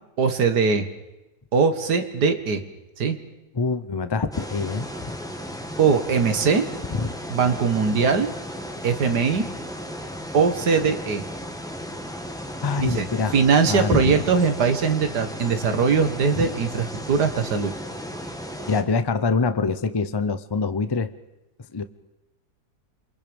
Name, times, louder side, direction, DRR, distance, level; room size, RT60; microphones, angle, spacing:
voice 1, 0.2-0.9 1.5-2.6 3.0-3.2 5.8-6.7 7.3-8.3 8.8-9.5 10.3-11.2 12.8-13.1 13.3-17.7, right 5 dB, 80° right, 8 dB, 2.1 m, -21 dB
voice 2, 3.5-5.2 7.0-7.1 12.6-13.3 13.7-14.2 16.4-16.5 18.7-21.1 21.7-21.8, left 4 dB, 30° left, 11 dB, 0.4 m, -25 dB
sound 1, 4.3-18.8, equal, ahead, 1.4 m, -35 dB
28.0 x 23.5 x 5.3 m, 0.98 s
omnidirectional pair, 1.7 m